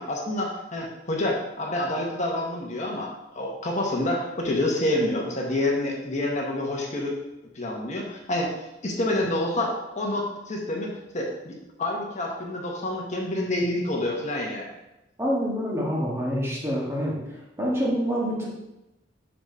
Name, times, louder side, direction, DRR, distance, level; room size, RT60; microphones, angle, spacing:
voice 1, 0.0-7.2 7.5-8.5 8.8-14.7, left 1 dB, 40° left, -1 dB, 1.0 m, -28 dB
voice 2, 15.2-18.5, equal, 15° right, -4 dB, 1.4 m, -27 dB
4.9 x 4.4 x 5.4 m, 0.94 s
head